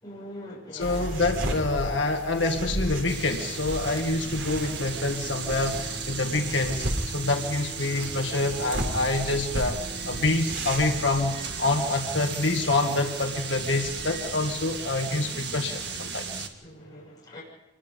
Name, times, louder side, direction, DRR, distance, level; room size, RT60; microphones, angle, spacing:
voice 1, 0.0-1.1 16.6-17.4, left 1 dB, 20° left, -5 dB, 6.6 m, -42 dB
voice 2, 0.7-6.9 7.1-16.4, left 2 dB, 70° left, 3 dB, 1.8 m, -27 dB
sound 1, 0.8-11.0, right 1 dB, 75° right, 3.5 m, -34 dB
sound 2, 3.1-16.5, right 5 dB, 60° right, 1.9 m, -35 dB
26.0 x 21.0 x 5.3 m, 0.97 s
head